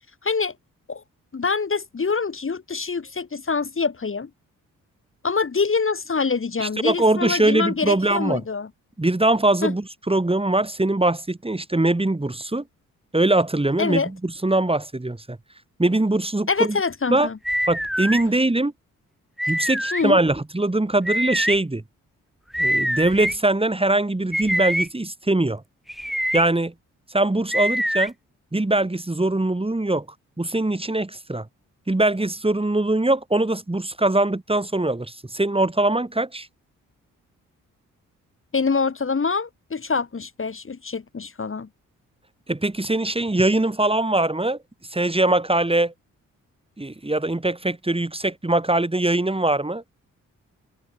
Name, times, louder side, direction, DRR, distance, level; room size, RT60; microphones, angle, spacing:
voice 1, 0.2-0.5 0.9-1.0 1.3-4.3 5.2-8.7 9.6-9.7 13.8-14.1 16.5-17.4 19.9-20.2 38.5-41.7, left 5 dB, 40° left, 2.3 m, -25 dB
voice 2, 6.6-8.4 9.0-12.6 13.1-15.4 15.8-16.8 17.1-17.3 17.7-18.7 19.5-21.8 22.6-25.6 26.3-26.7 27.1-28.1 28.5-30.0 30.4-31.5 31.9-36.5 42.5-44.6 44.9-45.9 46.8-49.8, right 2 dB, 15° right, 3.4 m, -22 dB
sound 1, 17.5-18.2 19.4-20.0 21.1-21.6 22.5-23.4 24.3-24.9 25.9-26.4 27.5-28.1, equal, ahead, 1.5 m, -24 dB
supercardioid pair, 45°, 34 cm